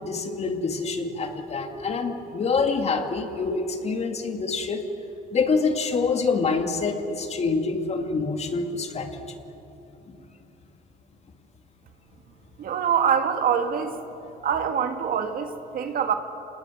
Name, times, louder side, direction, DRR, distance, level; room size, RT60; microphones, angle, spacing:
voice 1, 0.0-4.8 5.3-9.2, left 4 dB, 40° left, 5 dB, 2.5 m, -26 dB
voice 2, 12.6-14.0 14.4-16.1, right 7 dB, 60° right, 7 dB, 2.0 m, -24 dB
26.5 x 20.0 x 9.2 m, 3.0 s
cardioid pair, 110°, 17 cm